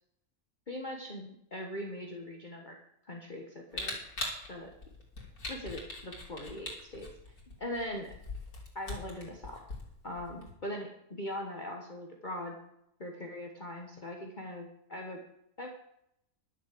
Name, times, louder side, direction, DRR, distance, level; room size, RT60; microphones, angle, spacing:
voice 1, 0.7-2.7 3.0-4.0 4.5-4.7 5.5-7.1 7.6-8.1 8.7-9.6 10.0-12.6 13.0-15.2 15.6-15.7, left 1 dB, 35° left, 1 dB, 1.4 m, -40 dB
Camera, 3.7-10.5, left 2 dB, 85° left, 3.2 m, -42 dB
11.5 x 6.8 x 7.6 m, 0.76 s
omnidirectional pair, 1.5 m